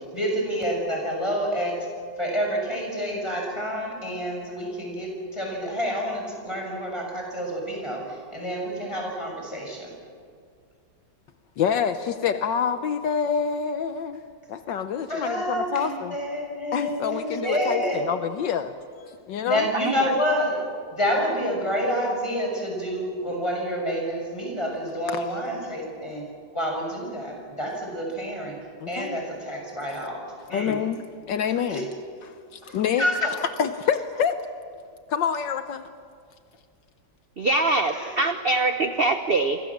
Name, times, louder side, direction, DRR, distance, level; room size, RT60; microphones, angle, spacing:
voice 1, 0.1-1.8 2.2-9.9 15.1-18.1 19.5-20.6 20.9-26.2 26.5-28.6 28.9-30.2 30.5-30.8 31.7-31.8 32.6-33.3 37.9-38.2, equal, 15° left, 0 dB, 6.5 m, -28 dB
voice 2, 11.6-14.2 14.5-16.2 16.7-18.7 19.0-19.7 25.1-25.2 28.8-29.2 30.5-31.9 32.2-33.1 33.6-34.4 35.1-35.8, left 7 dB, 75° left, 9 dB, 1.5 m, -27 dB
voice 3, 37.4-39.6, right 2 dB, 40° right, 8 dB, 0.9 m, -23 dB
28.5 x 24.5 x 7.4 m, 2.1 s
omnidirectional pair, 2.1 m